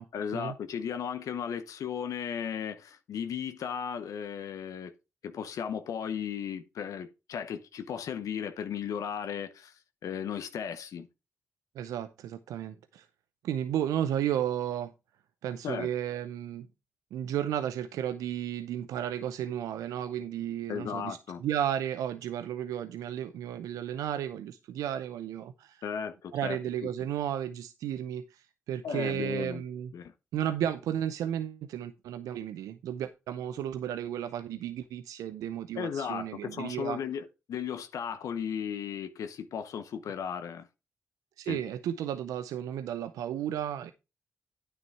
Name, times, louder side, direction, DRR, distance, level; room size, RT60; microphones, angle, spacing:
voice 1, 0.1-4.9 5.2-11.1 15.6-15.9 20.7-21.4 25.8-26.6 28.8-29.6 29.9-30.1 35.8-40.7 41.4-41.6, left 8 dB, 75° left, 0.8 m, -35 dB
voice 2, 11.8-13.1 13.4-14.9 15.4-16.7 17.1-25.8 26.3-29.9 30.3-37.0 41.4-43.9, right 10 dB, 85° right, 0.5 m, -33 dB
9.4 x 6.0 x 4.6 m
supercardioid pair, 45°, 6 cm